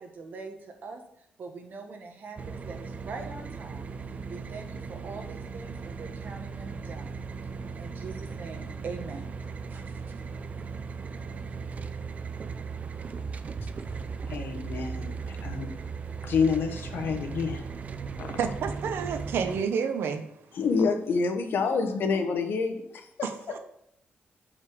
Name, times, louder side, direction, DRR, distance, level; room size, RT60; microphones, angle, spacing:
voice 1, 0.0-3.9 4.3-7.1 7.7-9.3 9.7-10.0, right 4 dB, 55° right, 4 dB, 1.5 m, -42 dB
sound 1, 2.4-19.6, right 5 dB, 40° right, 0.5 m, -37 dB
voice 2, 14.3-15.7 16.2-17.6 18.2-18.4 20.5-23.1, left 5 dB, 70° left, 6 dB, 1.2 m, -28 dB
voice 3, 18.4-20.2 23.2-23.6, right 6 dB, 85° right, 8 dB, 0.9 m, -29 dB
6.8 x 5.4 x 4.9 m, 0.75 s
cardioid pair, 125°, 4 cm